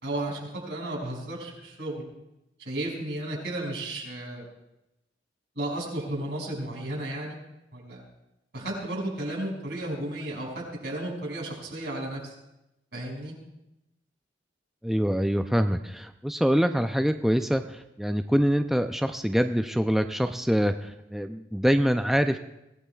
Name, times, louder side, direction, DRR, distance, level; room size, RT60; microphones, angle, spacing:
voice 1, 0.0-2.1 2.6-4.4 5.6-7.4 7.7-8.0 8.5-12.3 12.9-13.3, right 1 dB, 70° right, -1 dB, 5.6 m, -33 dB
voice 2, 14.8-22.4, equal, ahead, 7 dB, 0.4 m, -25 dB
23.5 x 16.5 x 2.3 m, 0.91 s
head